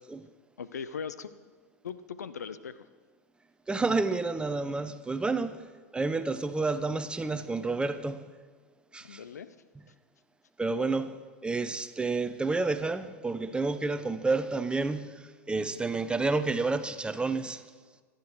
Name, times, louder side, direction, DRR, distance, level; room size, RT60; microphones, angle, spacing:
voice 1, 0.6-1.3 1.8-2.9 9.0-9.5, left 6 dB, 80° left, 0.7 m, -39 dB
voice 2, 3.7-5.7 5.9-8.3 8.9-9.2 10.6-17.6, right 3 dB, 10° right, 0.9 m, -30 dB
25.0 x 10.5 x 4.7 m
hypercardioid pair, 90°, 9 cm